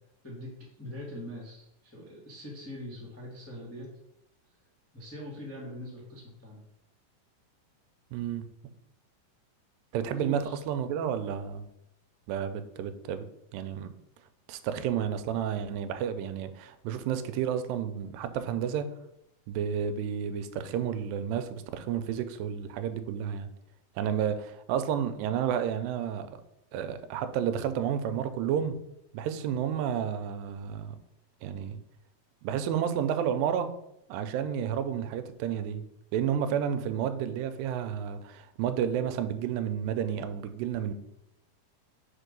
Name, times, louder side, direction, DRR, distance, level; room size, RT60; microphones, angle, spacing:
voice 1, 0.2-3.9 4.9-6.6 10.2-10.6, equal, 20° left, -5 dB, 0.3 m, -42 dB
voice 2, 8.1-8.5 9.9-11.7 12.3-13.3 13.5-13.9 14.5-18.9 19.5-23.5 24.0-26.4 26.7-28.8 29.1-31.0 31.4-31.8 32.4-33.7 34.1-35.8 36.1-40.9, right 8 dB, 90° right, 10 dB, 2.3 m, -31 dB
4.8 x 4.5 x 5.2 m, 0.80 s
omnidirectional pair, 3.9 m